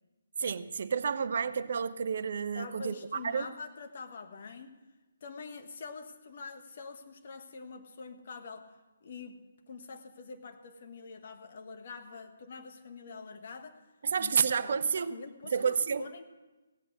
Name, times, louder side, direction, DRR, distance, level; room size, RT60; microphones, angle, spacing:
voice 1, 0.4-3.0 3.2-3.5 14.0-15.1 15.5-16.0, right 6 dB, 55° right, 14 dB, 0.6 m, -30 dB
voice 2, 2.5-4.8 5.2-8.7 9.0-9.4 9.7-13.8 14.2-16.2, left 4 dB, 50° left, 6 dB, 1.4 m, -45 dB
17.0 x 8.7 x 6.5 m, 1.1 s
figure-of-eight pair, 140°, 0 cm